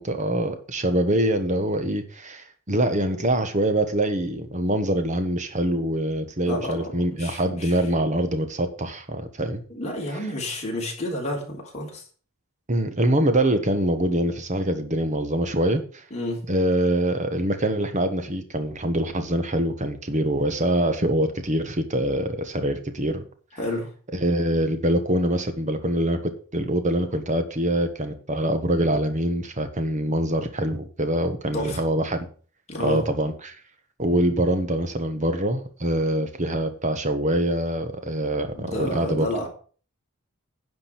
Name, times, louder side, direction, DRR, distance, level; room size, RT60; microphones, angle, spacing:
voice 1, 0.0-9.6 12.7-16.0 16.5-23.2 24.1-32.3 32.8-33.5 34.0-39.3, right 1 dB, 35° right, 8 dB, 1.4 m, -24 dB
voice 2, 6.5-7.7 9.7-12.0 16.1-16.4 23.6-23.9 31.5-31.8 32.7-33.0 38.6-39.5, left 1 dB, 30° left, -2 dB, 4.0 m, -30 dB
10.5 x 5.2 x 7.7 m, 0.41 s
head